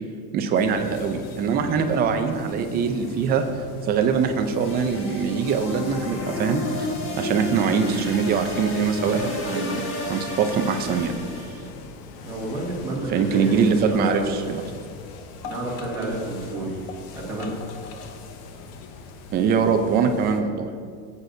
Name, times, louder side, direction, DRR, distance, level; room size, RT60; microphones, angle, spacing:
voice 1, 0.3-3.4 3.8-6.9 7.2-9.8 10.1-11.2 12.9-14.7 19.3-20.7, right 6 dB, 25° right, 6 dB, 0.4 m, -23 dB
sound 1, 0.5-20.4, left 4 dB, 70° left, 1.0 m, -40 dB
sound 2, 4.6-11.7, left 2 dB, 30° left, 1.4 m, -32 dB
voice 2, 12.2-13.5 13.9-14.3 15.4-16.8 17.1-17.6, right 1 dB, 10° right, -8 dB, 1.8 m, -30 dB
15.5 x 8.2 x 2.7 m, 2.1 s
cardioid pair, 160°, 43 cm